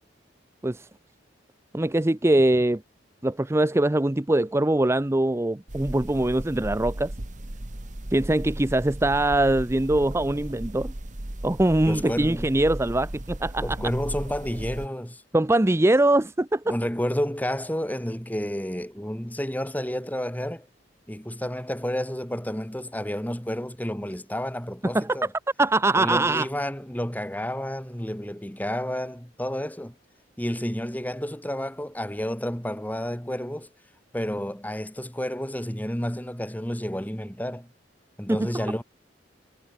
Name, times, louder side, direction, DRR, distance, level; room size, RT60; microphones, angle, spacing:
voice 1, 1.7-2.8 3.2-7.1 8.1-10.9 11.4-13.8 15.3-16.7 24.9-25.2 25.6-26.5 38.3-38.5, right 1 dB, 15° right, 0.6 m, -22 dB
sound 1, 5.7-14.9, right 1 dB, 40° right, 1.6 m, -36 dB
voice 2, 11.9-12.5 13.6-15.2 16.7-20.7 21.1-25.3 25.9-30.0 30.4-33.7 34.1-37.7 38.2-38.8, equal, 10° left, 2.4 m, -30 dB
head